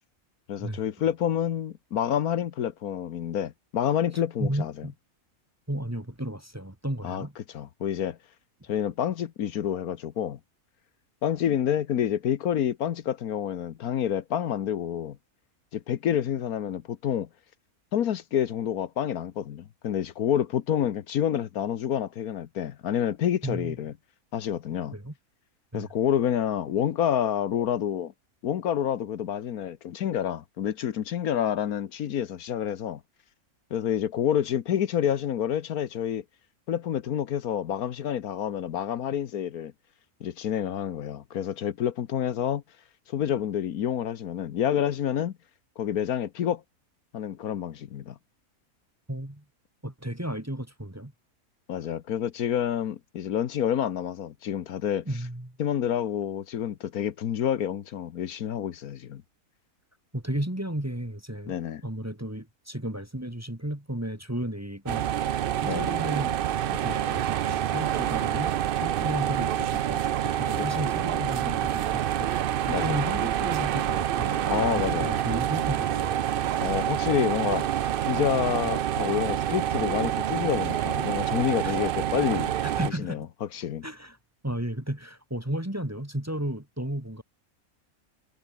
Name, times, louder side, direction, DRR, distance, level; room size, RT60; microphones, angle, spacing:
voice 1, 0.5-4.9 7.0-7.3 7.5-8.2 8.7-10.4 11.2-15.2 15.7-17.3 17.9-23.9 24.3-25.0 25.7-28.1 28.4-33.0 33.7-36.2 36.7-39.7 40.2-42.6 43.1-45.3 45.8-46.6 47.1-48.2 51.7-55.1 55.6-59.2 61.5-61.8 65.7-65.9 70.8-70.9 72.7-73.0 74.5-75.2 76.6-77.7 78.0-82.5 83.0-83.9, left 9 dB, 75° left, 1.4 m, -28 dB
voice 2, 4.4-4.9 5.7-7.3 23.4-23.7 24.9-25.1 25.7-25.9 49.1-49.4 49.8-51.1 55.1-55.6 60.1-61.6 61.8-65.1 65.6-66.4 66.7-68.5 68.8-72.3 72.7-76.2 81.6-81.7 82.6-83.3 83.8-84.2 84.4-87.2, right 1 dB, 10° right, 1.9 m, -33 dB
sound 1, 64.9-82.9, right 11 dB, 75° right, 0.5 m, -27 dB
omnidirectional pair, 1.6 m